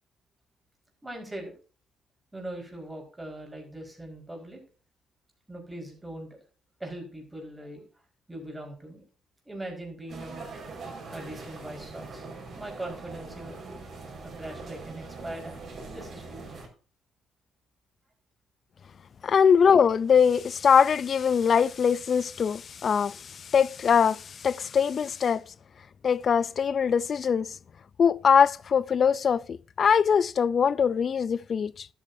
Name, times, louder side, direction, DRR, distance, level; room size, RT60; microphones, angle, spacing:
voice 1, 1.0-1.5 2.3-4.6 5.5-6.3 6.8-7.8 8.3-9.0 9.5-10.5 11.1-12.2 12.5-13.6 14.2-15.6 15.9-16.6, right 1 dB, 15° right, 4.7 m, -40 dB
sound 1, 10.1-16.7, right 3 dB, 50° right, 4.8 m, -42 dB
voice 2, 19.2-25.4 26.0-27.5 28.0-31.9, left 7 dB, 50° left, 0.5 m, -22 dB
12.5 x 8.6 x 2.7 m
cardioid pair, 90°, 0 cm